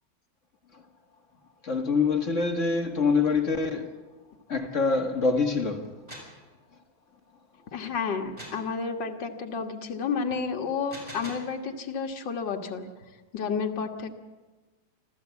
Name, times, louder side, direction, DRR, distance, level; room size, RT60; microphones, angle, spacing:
voice 1, 1.6-3.9 4.5-5.8, left 4 dB, 40° left, 2.1 m, -25 dB
sound 1, 5.8-6.4 8.4-8.7 10.7-11.5, equal, 20° right, 6.8 m, -43 dB
voice 2, 7.7-12.8 13.3-14.1, left 5 dB, 65° left, 2.3 m, -31 dB
26.5 x 14.5 x 8.3 m
omnidirectional pair, 2.1 m